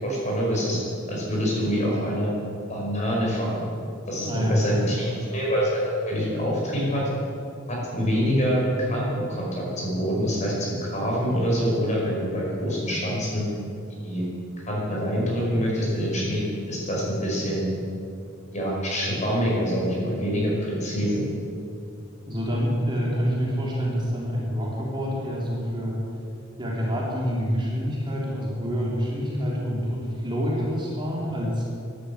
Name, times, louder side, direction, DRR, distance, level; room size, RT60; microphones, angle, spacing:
voice 1, 0.0-0.8 1.1-2.3 2.7-3.6 4.1-7.0 7.7-13.5 14.0-14.2 14.7-17.6 18.5-21.2, equal, 35° left, -3 dB, 5.2 m, -25 dB
voice 2, 4.3-5.0 22.3-26.0 26.6-31.6, equal, 25° right, -5 dB, 3.4 m, -27 dB
14.0 x 11.5 x 8.2 m, 2.5 s
head